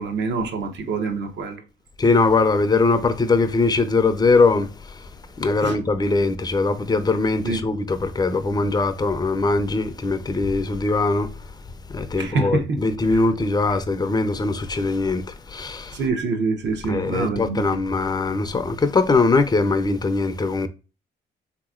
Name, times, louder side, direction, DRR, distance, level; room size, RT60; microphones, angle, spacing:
voice 1, 0.0-1.6 5.6-5.8 7.4-7.6 12.2-12.8 15.9-17.8, right 4 dB, 65° right, 0.9 m, -25 dB
voice 2, 2.0-4.7 5.4-11.3 11.9-15.2 15.5-16.0 16.8-20.7, left 3 dB, 20° left, 0.5 m, -21 dB
3.6 x 2.9 x 2.4 m
cardioid pair, 90°, 20 cm